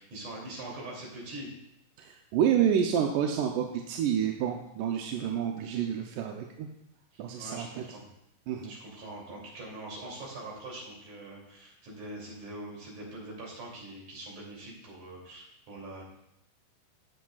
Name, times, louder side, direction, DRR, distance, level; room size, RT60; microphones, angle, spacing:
voice 1, 0.0-1.5 7.1-8.1 8.7-16.0, right 2 dB, 55° right, -3 dB, 4.1 m, -43 dB
voice 2, 2.0-6.7 7.2-7.7 8.5-8.7, right 8 dB, 75° right, 2 dB, 2.1 m, -28 dB
16.0 x 7.6 x 2.4 m, 0.81 s
omnidirectional pair, 4.1 m